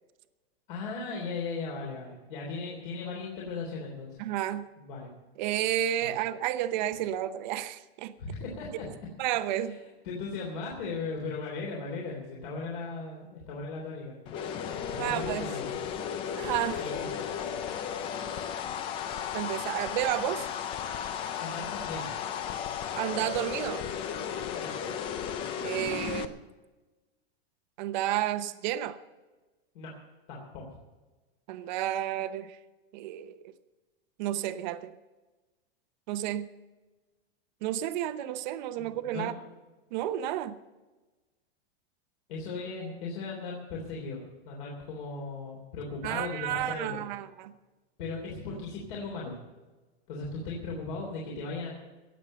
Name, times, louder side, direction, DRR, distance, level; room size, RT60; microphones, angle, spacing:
voice 1, 0.7-4.2 4.8-5.1 6.0-6.1 8.2-8.9 9.5-9.7 10.0-14.2 14.9-15.7 16.8-17.2 21.4-22.1 24.6-24.7 29.7-29.9 30.3-30.6 38.8-39.3 42.3-47.0 48.0-49.3 50.1-51.7, left 4 dB, 50° left, -2 dB, 3.4 m, -37 dB
voice 2, 4.2-4.7 5.4-8.1 9.2-9.8 15.0-15.5 16.4-16.8 19.3-20.5 23.0-23.8 25.6-26.3 27.8-29.0 31.5-32.6 32.9-33.4 34.2-34.9 36.1-36.5 37.6-39.3 39.9-40.6 46.0-47.5, right 12 dB, 45° right, 11 dB, 0.9 m, -31 dB
sound 1, 14.3-26.3, left 8 dB, 15° left, 0.4 m, -34 dB
18.0 x 7.4 x 7.8 m, 1.2 s
supercardioid pair, 165°, 32 cm